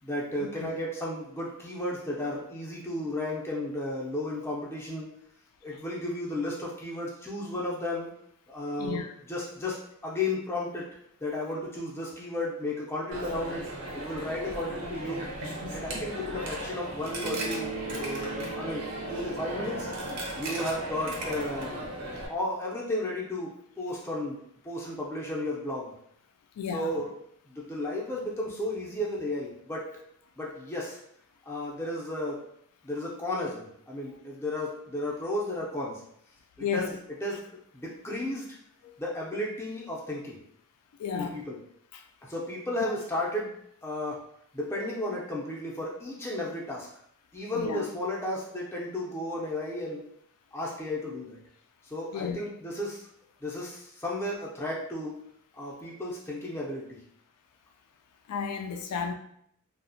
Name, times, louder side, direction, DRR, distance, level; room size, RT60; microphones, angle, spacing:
voice 1, 0.0-5.1 5.6-8.1 8.5-9.0 9.3-9.8 10.0-10.8 11.2-13.6 13.9-15.2 15.7-18.8 19.1-19.9 20.4-21.9 22.3-23.5 23.8-24.4 24.6-25.9 26.7-27.1 27.5-29.9 30.4-31.0 31.4-32.4 32.8-36.0 36.6-36.9 37.2-37.4 37.7-38.5 39.0-40.4 41.1-41.6 42.2-43.5 43.8-44.2 44.5-46.9 47.3-50.0 50.5-51.4 51.8-53.1 53.4-55.2 55.5-57.0, left 1 dB, 10° left, -4 dB, 0.4 m, -33 dB
voice 2, 8.8-9.1 26.6-26.9 36.6-36.9 41.0-41.4 41.9-42.0 42.8-42.9 47.6-47.8 52.1-52.4 58.3-59.1, left 6 dB, 90° left, 5 dB, 0.3 m, -32 dB
Coin (dropping), 13.1-22.3, right 1 dB, 90° right, 0.6 m, -36 dB
Bass guitar, 17.2-21.2, right 4 dB, 50° right, 0.3 m, -40 dB
2.8 x 2.0 x 2.6 m, 0.70 s
head